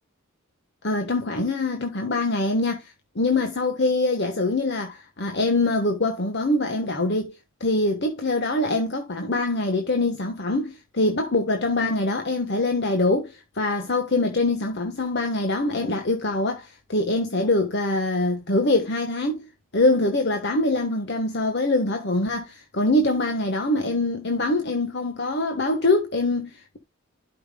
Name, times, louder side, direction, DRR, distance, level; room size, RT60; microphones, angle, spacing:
voice 1, 0.8-7.3 7.6-26.8, left 2 dB, 50° left, 1.2 m, -24 dB
12.0 x 5.8 x 2.2 m
head